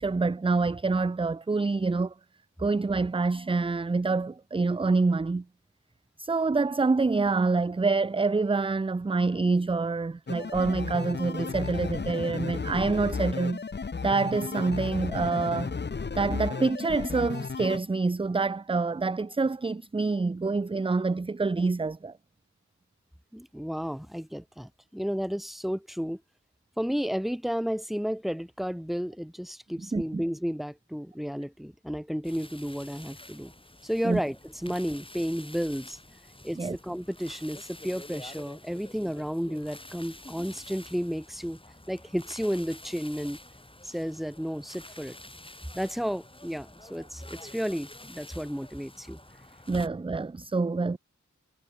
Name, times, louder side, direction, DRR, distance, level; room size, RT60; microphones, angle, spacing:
voice 1, 0.0-2.1 2.6-5.4 6.2-13.6 14.0-15.7 16.2-22.2 29.9-30.2 34.0-34.2 36.6-36.8 49.7-51.0, right 3 dB, 20° right, 0.4 m, -26 dB
sound 1, 10.3-17.8, left 5 dB, 35° left, 0.6 m, -34 dB
voice 2, 23.3-26.2 26.8-33.5 33.8-36.0 36.4-41.6 41.9-43.4 43.8-45.2 45.7-49.2, equal, ahead, 1.2 m, -32 dB
sound 2, 32.2-49.9, left 1 dB, 15° left, 2.2 m, -48 dB
wide cardioid pair, 50°, 30 cm